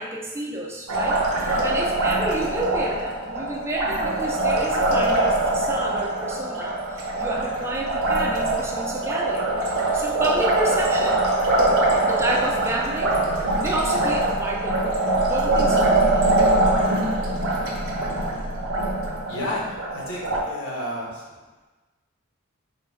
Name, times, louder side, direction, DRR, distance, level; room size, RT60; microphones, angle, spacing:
voice 1, 0.0-11.3 12.0-13.2 13.6-15.0 15.3-15.9, right 1 dB, 10° right, -2 dB, 0.4 m, -30 dB
Liquid, 0.9-20.4, right 2 dB, 85° right, 0.6 m, -23 dB
voice 2, 19.3-21.2, left 1 dB, 75° left, -4 dB, 1.1 m, -31 dB
3.7 x 2.4 x 3.4 m, 1.2 s
head